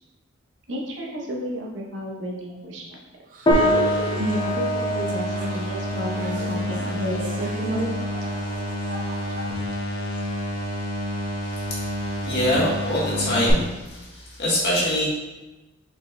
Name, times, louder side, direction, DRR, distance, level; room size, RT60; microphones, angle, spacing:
voice 1, 0.7-2.8 4.2-7.9, equal, 65° right, -2 dB, 0.8 m, -31 dB
sound 1, 3.3-10.2, right 1 dB, 45° right, 0.5 m, -37 dB
sound 2, 3.5-13.5, left 1 dB, 80° left, 0.9 m, -29 dB
sound 3, 3.5-13.1, equal, 25° left, 0.6 m, -29 dB
voice 2, 11.4-15.0, left 1 dB, 55° left, -6 dB, 1.5 m, -25 dB
5.1 x 4.2 x 2.2 m, 1.1 s
head